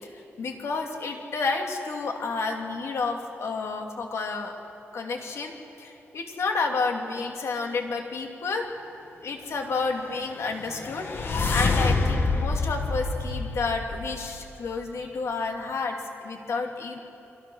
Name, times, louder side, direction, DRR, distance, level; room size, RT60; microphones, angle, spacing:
voice 1, 0.4-4.5 4.9-8.7 9.2-17.0, left 4 dB, 70° left, 2 dB, 2.9 m, -30 dB
sound 1, 10.3-14.5, left 3 dB, 50° left, 1.8 m, -27 dB
29.0 x 22.5 x 6.5 m, 2.8 s
wide cardioid pair, 155°, 5 cm